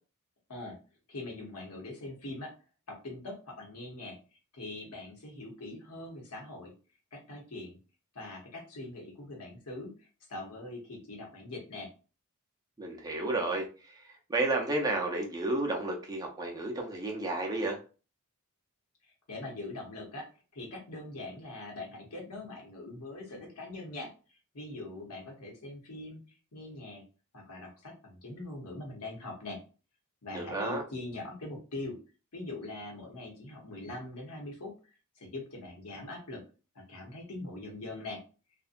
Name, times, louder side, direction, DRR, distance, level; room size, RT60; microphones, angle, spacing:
voice 1, 1.1-2.5 2.9-4.2 4.5-6.7 7.1-7.8 8.1-11.9 19.0-20.3 20.5-27.0 27.3-29.6 30.2-32.0 32.3-34.7 35.2-36.4 36.7-38.2, left 2 dB, 80° left, 0 dB, 0.9 m, -42 dB
voice 2, 12.8-13.9 14.3-17.8 30.3-30.8, right 2 dB, 15° right, 0 dB, 0.5 m, -32 dB
2.6 x 2.1 x 2.5 m, 0.35 s
head